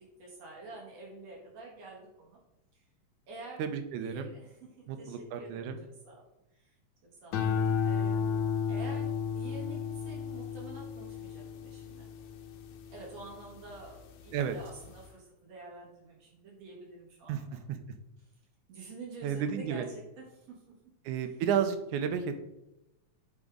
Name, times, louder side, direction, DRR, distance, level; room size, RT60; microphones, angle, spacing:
voice 1, 0.2-2.4 2.7-2.8 3.3-3.6 4.0-6.2 6.5-6.8 7.0-7.4 7.8-12.1 12.9-17.6 18.7-20.7 21.2-21.4, right 3 dB, 60° right, -2 dB, 2.7 m, -48 dB
voice 2, 3.6-4.3 4.9-5.8 14.3-14.6 17.3-17.4 17.7-17.8 19.2-19.9 21.1-22.4, right 8 dB, 85° right, 8 dB, 2.1 m, -32 dB
sound 1, 7.3-13.8 14.3-14.8, left 6 dB, 75° left, 1.9 m, -33 dB
7.9 x 4.9 x 3.7 m, 0.89 s
omnidirectional pair, 3.5 m